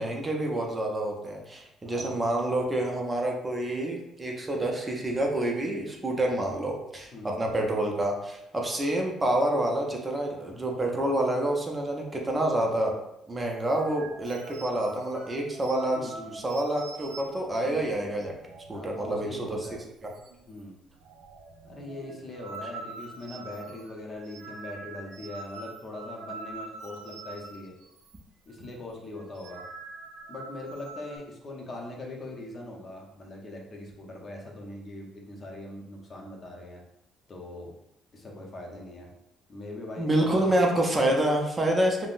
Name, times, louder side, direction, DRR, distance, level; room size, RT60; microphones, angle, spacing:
voice 1, 0.0-12.9 13.3-18.3 18.7-19.6 20.0-20.1 40.0-42.1, right 1 dB, 20° right, 0 dB, 0.5 m, -28 dB
voice 2, 1.8-2.1 7.1-7.3 15.9-16.4 18.7-19.8 20.5-20.8 21.6-27.7 28.5-29.6 30.3-36.8 37.3-37.7 38.1-39.1 39.5-40.5, left 1 dB, 40° left, -1 dB, 0.7 m, -41 dB
sound 1, 13.4-19.3 19.6-19.8 20.0-20.6 20.9-28.2 28.5-28.7 29.2-31.2, right 3 dB, 80° right, 0.3 m, -45 dB
3.6 x 2.0 x 2.4 m, 0.84 s
cardioid pair, 100°, 0 cm